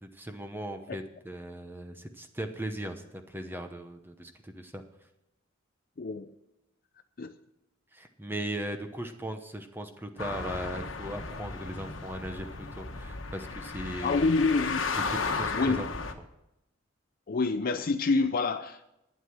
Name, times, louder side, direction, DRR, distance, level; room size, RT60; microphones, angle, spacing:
voice 1, 0.0-4.8 7.9-14.4 15.1-15.9, right 1 dB, 10° right, 6 dB, 0.9 m, -38 dB
voice 2, 6.0-6.3 7.2-7.4 14.0-14.8 15.5-15.8 17.3-18.9, left 3 dB, 45° left, 9 dB, 0.5 m, -27 dB
sound 1, 10.2-16.1, left 4 dB, 75° left, 1.2 m, -35 dB
11.5 x 9.5 x 6.2 m, 0.88 s
head